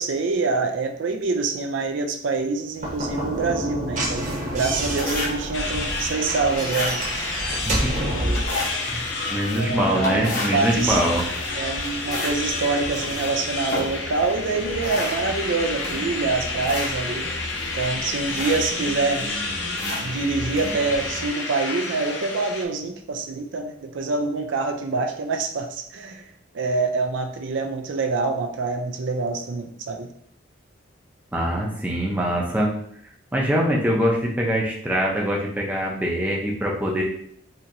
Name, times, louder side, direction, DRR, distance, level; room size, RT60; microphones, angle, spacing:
voice 1, 0.0-7.0 8.0-8.4 9.5-11.0 11.6-17.3 17.7-19.3 20.0-26.3 26.5-30.1, right 4 dB, 65° right, 4 dB, 0.4 m, -26 dB
Slam / Knock, 2.7-8.6, right 1 dB, 40° right, 1.0 m, -29 dB
sound 1, 4.1-21.3, left 1 dB, 50° left, 1.0 m, -33 dB
sound 2, 5.5-22.6, left 3 dB, 70° left, 0.6 m, -31 dB
voice 2, 7.5-7.9 8.7-11.2 31.3-32.7 33.3-37.0, equal, 10° right, -3 dB, 0.6 m, -23 dB
4.3 x 2.8 x 2.6 m, 0.67 s
head